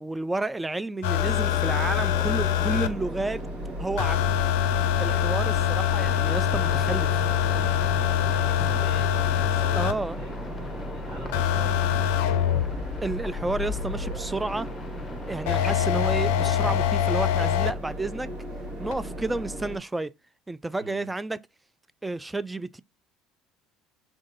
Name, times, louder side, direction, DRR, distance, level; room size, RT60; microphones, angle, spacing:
voice 1, 0.0-3.4 3.8-4.2 5.0-7.2 9.7-10.2 13.0-14.7 15.3-18.3 18.8-20.1 20.5-21.4 22.0-22.8, right 2 dB, 10° right, 0.3 m, -31 dB
sound 1, 1.0-2.9 4.0-9.9 11.3-14.3 15.5-17.7 18.9-19.0, left 10 dB, 80° left, 0.4 m, -24 dB
sound 2, 1.1-19.8, equal, 70° right, 2.1 m, -36 dB
voice 2, 5.0-5.6 8.4-12.6 20.8-21.1, right 4 dB, 40° right, 1.8 m, -46 dB
sound 3, 6.5-16.9, left 3 dB, 25° left, 0.7 m, -41 dB
3.5 x 2.5 x 3.9 m
hypercardioid pair, 80°, 0 cm